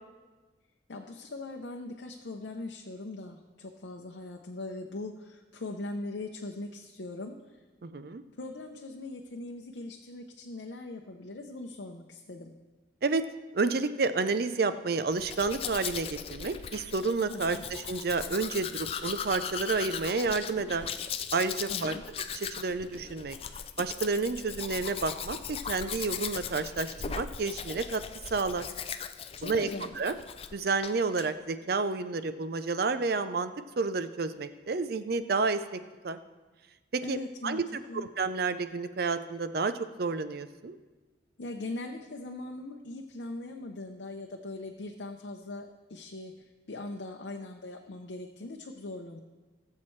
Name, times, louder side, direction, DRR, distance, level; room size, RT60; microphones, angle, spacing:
voice 1, 0.9-7.6 8.4-12.5 17.3-17.6 21.7-22.0 29.4-29.9 37.0-37.6 37.9-38.1 41.4-49.2, left 2 dB, 70° left, 2 dB, 0.7 m, -40 dB
voice 2, 7.8-8.2 13.0-13.2 13.5-20.9 21.3-21.9 22.3-23.4 23.8-28.0 28.3-28.7 29.4-29.7 30.0-30.1 30.5-33.5 33.8-36.2 36.9-37.2 37.4-40.8, right 4 dB, 55° right, 11 dB, 0.5 m, -30 dB
Domestic sounds home sounds, 15.1-30.6 30.8-31.3, left 7 dB, 30° left, 0.3 m, -38 dB
18.0 x 7.5 x 3.2 m, 1.3 s
head